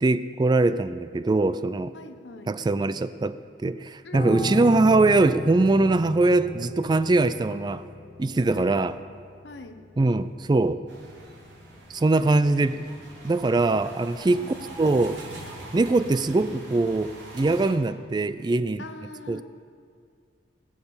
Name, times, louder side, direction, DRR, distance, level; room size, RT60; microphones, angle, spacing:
voice 1, 0.0-1.9 2.5-7.8 8.2-8.9 10.0-10.8 11.9-12.8 13.2-14.4 14.8-15.2 15.7-18.8 19.3-19.4, right 2 dB, 25° right, 13 dB, 0.3 m, -22 dB
voice 2, 1.9-2.6 4.0-4.7 8.4-8.8 9.4-9.8 14.4-14.6 18.8-19.4, left 2 dB, 70° left, 7 dB, 1.1 m, -42 dB
Piano, 4.1-13.5 13.8-14.0, left 2 dB, 50° left, 1.5 m, -37 dB
sound 1, 10.9-17.7, right 1 dB, 85° right, 3.4 m, -43 dB
20.0 x 7.4 x 7.0 m, 2.2 s
head